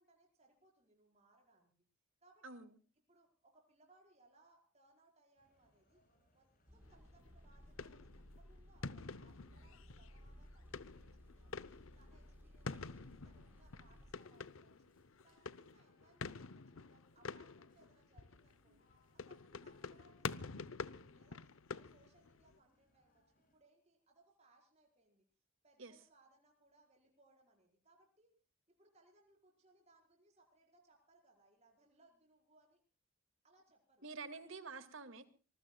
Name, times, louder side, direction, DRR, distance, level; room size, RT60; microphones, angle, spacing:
voice 1, 0.0-1.7 2.2-2.7 3.1-6.0 6.3-11.6 11.9-14.9 15.2-18.9 19.1-25.3 25.6-28.3 28.7-32.8 33.4-34.1, right 2 dB, 30° right, 4.9 m, -71 dB
sound 1, 5.4-23.6, left 1 dB, 40° left, 7.3 m, -77 dB
sound 2, 6.7-14.1, equal, 10° right, 4.7 m, -59 dB
sound 3, 6.8-22.6, left 4 dB, 75° left, 0.8 m, -48 dB
voice 2, 34.0-35.3, right 4 dB, 70° right, 2.2 m, -48 dB
26.0 x 20.0 x 2.3 m
head